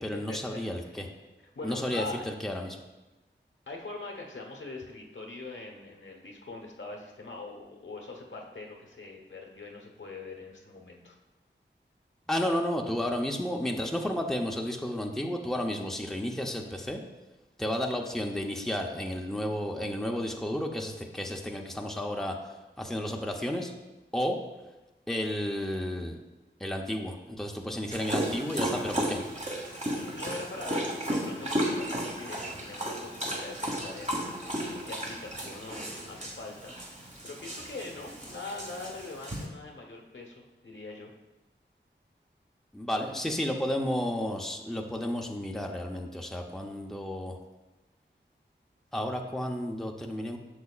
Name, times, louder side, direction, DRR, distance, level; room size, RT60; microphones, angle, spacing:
voice 1, 0.0-1.1 1.6-2.8 12.3-17.0 17.6-22.3 22.8-23.7 24.1-24.4 25.1-26.2 26.6-29.2 42.7-47.4 48.9-50.4, left 1 dB, ahead, 1 dB, 0.7 m, -32 dB
voice 2, 1.5-2.2 3.7-11.2 30.0-41.1, left 3 dB, 75° left, 1 dB, 1.1 m, -42 dB
Dog, 27.9-39.5, right 1 dB, 40° right, 1.4 m, -34 dB
8.2 x 6.2 x 2.4 m, 1.1 s
wide cardioid pair, 45°, 20 cm